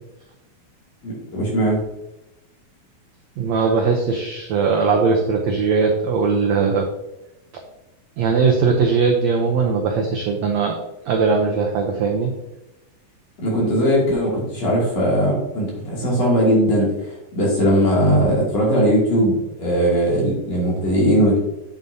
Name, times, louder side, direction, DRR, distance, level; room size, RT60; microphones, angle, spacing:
voice 1, 1.0-1.8 13.4-21.4, equal, 50° left, -4 dB, 3.6 m, -19 dB
voice 2, 3.4-6.9 8.2-10.8 11.0-12.3, right 5 dB, 80° right, 2 dB, 1.6 m, -19 dB
9.0 x 7.2 x 2.8 m, 0.93 s
omnidirectional pair, 4.1 m